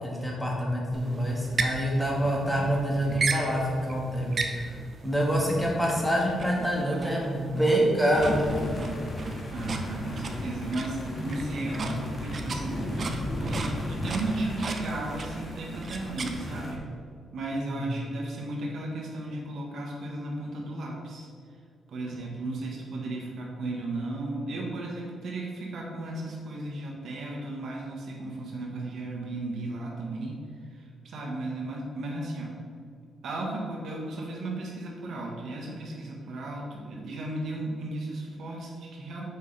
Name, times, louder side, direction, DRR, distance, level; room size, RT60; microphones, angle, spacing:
voice 1, 0.0-4.7 5.0-8.5 17.5-17.9, equal, 5° left, -3 dB, 1.5 m, -26 dB
sound 1, 0.9-16.8, right 3 dB, 45° right, 0.6 m, -36 dB
voice 2, 2.4-2.7 9.5-13.1 13.4-16.8 17.3-21.3 21.9-30.4 30.7-32.6 33.2-39.2, right 2 dB, 70° right, -2 dB, 1.2 m, -35 dB
sound 2, 8.1-16.7, left 1 dB, 35° left, 1.5 m, -35 dB
6.5 x 5.3 x 3.3 m, 2.2 s
cardioid pair, 80°, 0 cm